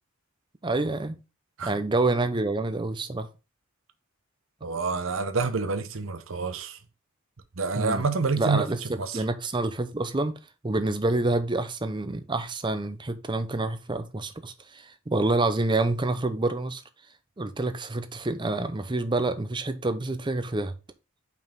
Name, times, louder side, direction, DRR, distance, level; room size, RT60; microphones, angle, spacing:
voice 1, 0.6-1.2 1.6-3.3 7.7-8.0 8.4-8.8 9.1-10.4 10.6-16.8 17.4-20.7, right 2 dB, 20° right, 0.6 m, -27 dB
voice 2, 4.6-6.8 7.6-9.2, right 4 dB, 70° right, 0.8 m, -28 dB
5.5 x 4.7 x 3.7 m
head